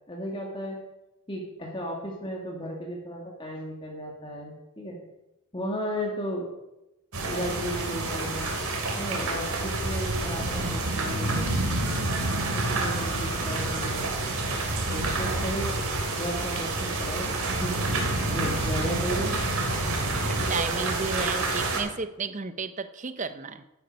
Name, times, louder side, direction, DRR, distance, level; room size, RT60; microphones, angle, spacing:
voice 1, 0.1-0.8 1.3-5.0 5.5-6.5 7.2-8.6 9.0-11.5 12.3-14.4 14.9-15.8 16.2-17.8 18.3-19.4, equal, 20° left, -1 dB, 1.9 m, -34 dB
sound 1, 7.1-21.8, right 2 dB, 75° right, 3.0 m, -28 dB
voice 2, 20.3-23.6, right 4 dB, 35° right, 12 dB, 0.6 m, -32 dB
11.5 x 10.5 x 5.3 m, 0.94 s
head